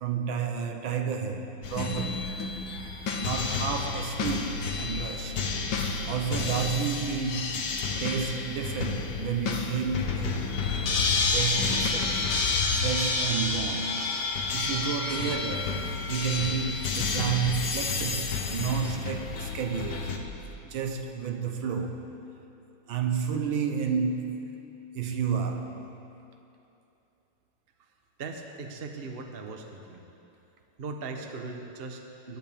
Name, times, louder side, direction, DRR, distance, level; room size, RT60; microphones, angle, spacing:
voice 1, 0.0-2.3 3.2-5.4 6.1-10.4 11.0-12.2 12.8-14.1 14.5-15.8 16.1-20.2 20.6-22.1 22.9-24.7 24.9-25.8, right 6 dB, 70° right, 1.6 m, -31 dB
sound 1, 1.6-20.2, left 4 dB, 60° left, 1.5 m, -30 dB
voice 2, 28.2-30.0 30.8-32.4, right 3 dB, 40° right, 0.9 m, -39 dB
23.0 x 11.0 x 3.5 m
omnidirectional pair, 2.3 m